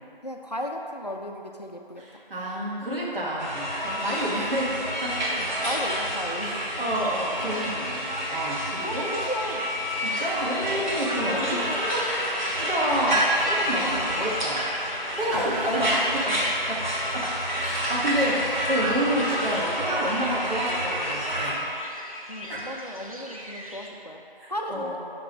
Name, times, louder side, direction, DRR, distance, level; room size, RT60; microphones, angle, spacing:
voice 1, 0.2-2.2 4.1-4.8 5.3-6.7 8.8-9.7 11.0-11.9 13.0-13.2 13.6-14.3 15.3-15.8 22.3-24.2 24.5-25.0, equal, 45° left, 2 dB, 0.4 m, -35 dB
voice 2, 2.0-4.7 5.0-5.1 6.4-9.1 10.0-12.0 12.6-14.6 15.1-16.4 16.7-16.8 17.1-17.3 17.6-21.6 22.5-22.6 24.4-25.0, right 1 dB, 70° right, -6 dB, 1.4 m, -29 dB
sound 1, 3.4-21.5, equal, 55° right, 1.4 m, -28 dB
sound 2, 6.3-23.9, equal, 40° right, 0.5 m, -42 dB
6.0 x 2.9 x 5.4 m, 2.7 s
figure-of-eight pair, 175°, 29 cm